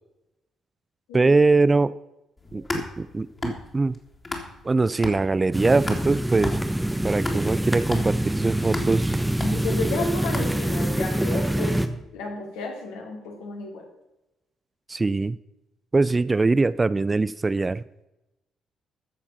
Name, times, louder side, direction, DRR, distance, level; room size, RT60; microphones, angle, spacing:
voice 1, 1.1-1.9 2.5-4.0 4.6-6.6 7.0-9.1 14.9-15.4 15.9-17.8, right 3 dB, 25° right, 18 dB, 0.4 m, -22 dB
sound 1, 2.4-4.7 5.0-11.0, left 2 dB, 25° left, 2.7 m, -35 dB
sound 2, 5.5-11.9, right 1 dB, 5° right, 1.2 m, -25 dB
voice 2, 9.4-11.8 12.1-13.8, left 3 dB, 70° left, 0 dB, 2.6 m, -32 dB
14.0 x 7.2 x 5.5 m, 0.94 s
figure-of-eight pair, 45°, 0 cm